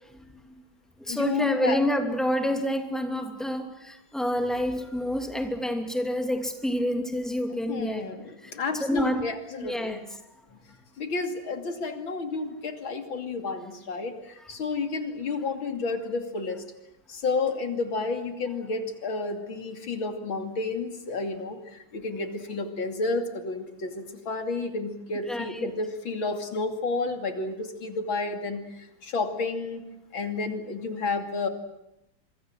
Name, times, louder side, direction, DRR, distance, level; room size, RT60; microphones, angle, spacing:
voice 1, 0.1-0.6 1.0-8.1 8.4-8.5 8.8-9.3 9.6-10.0 25.3-25.7, equal, ahead, 2.7 m, -28 dB
voice 2, 1.1-1.8 7.5-10.0 10.5-10.6 11.0-16.6 17.1-29.8 30.1-31.5, left 3 dB, 90° left, 3.5 m, -31 dB
26.5 x 24.0 x 7.7 m
omnidirectional pair, 2.1 m